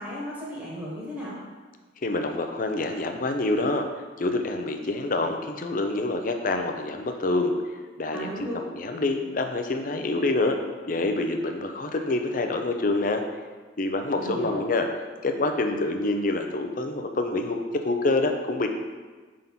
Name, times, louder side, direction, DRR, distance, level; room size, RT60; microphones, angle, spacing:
voice 1, 0.0-1.4 8.1-8.7 14.2-14.6, equal, 10° right, -7 dB, 1.2 m, -35 dB
voice 2, 2.0-3.9 4.2-7.5 8.0-8.5 8.8-10.6 10.9-13.2 13.8-14.9 15.2-18.7, left 2 dB, 45° left, 5 dB, 0.6 m, -26 dB
5.4 x 3.8 x 5.8 m, 1.4 s
head